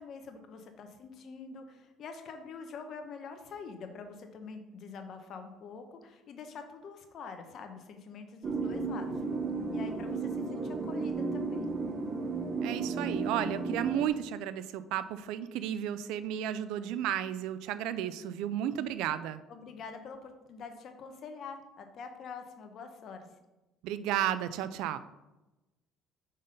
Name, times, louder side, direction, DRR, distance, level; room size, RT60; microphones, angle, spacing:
voice 1, 0.0-9.2 9.7-11.7 19.5-23.3, left 5 dB, 55° left, 6 dB, 0.9 m, -45 dB
sound 1, 8.4-14.1, right 3 dB, 45° right, 0.8 m, -34 dB
voice 2, 12.6-19.4 23.8-25.0, right 11 dB, 75° right, 13 dB, 0.3 m, -33 dB
5.4 x 4.0 x 5.1 m, 1.0 s
supercardioid pair, 85°, 0 cm